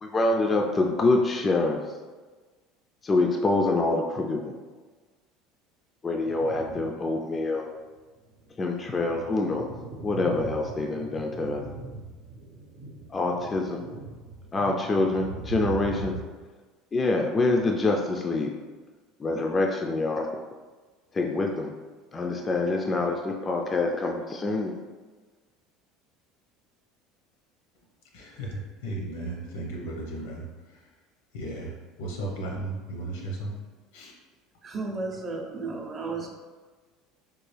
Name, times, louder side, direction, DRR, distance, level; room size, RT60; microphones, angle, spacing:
voice 1, 0.0-1.8 3.0-4.5 6.0-7.7 8.6-9.7 10.0-11.6 13.1-13.8 14.5-16.1 16.9-18.5 19.2-20.3 21.1-21.7 22.1-24.7, left 2 dB, 20° left, 1 dB, 0.3 m, -26 dB
sound 1, 6.2-7.1 7.6-7.7 8.3-16.2, right 4 dB, 75° right, 0.6 m, -40 dB
voice 2, 28.1-30.4 31.3-31.7 32.0-33.5 33.9-34.1, right 2 dB, 90° left, -1 dB, 0.9 m, -35 dB
voice 3, 34.6-36.3, right 3 dB, 30° right, 1 dB, 0.5 m, -33 dB
3.5 x 2.3 x 3.3 m, 1.4 s
supercardioid pair, 125°, 0 cm